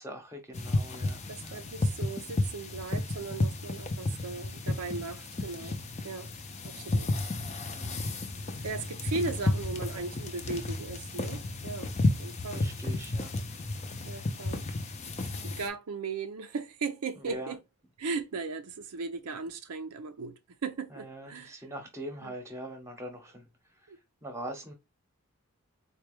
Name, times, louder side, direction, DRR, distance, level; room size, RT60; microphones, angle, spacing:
voice 1, 0.0-1.6 7.7-8.0 12.5-13.4 17.2-17.5 20.9-23.5 24.2-24.7, right 1 dB, 10° right, 0.9 m, -42 dB
sound 1, 0.5-15.7, left 2 dB, 30° left, 0.5 m, -32 dB
voice 2, 1.3-6.3 6.6-7.2 8.6-11.9 12.2-12.7 14.0-14.7 15.4-17.6 18.0-21.6 22.2-22.4 23.9-24.0, right 4 dB, 90° right, 0.5 m, -37 dB
3.9 x 2.3 x 3.1 m
head